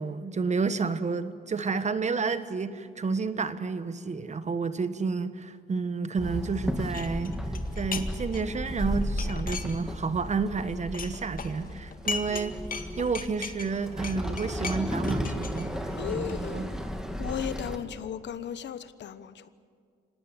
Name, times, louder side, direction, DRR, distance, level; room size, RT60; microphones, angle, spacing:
voice 1, 0.0-7.4 7.8-12.6 13.0-16.7, right 4 dB, 35° right, 1.3 m, -30 dB
Walk footsteps / Chatter / Hiss, 6.2-17.8, equal, 5° right, 2.2 m, -34 dB
sound 1, 6.9-8.1 8.3-10.1 10.4-12.4 12.7-16.5, left 5 dB, 45° left, 1.9 m, -38 dB
voice 2, 16.0-16.8 17.2-19.5, left 9 dB, 65° left, 1.1 m, -35 dB
25.0 x 18.0 x 9.7 m
cardioid pair, 90°, 20 cm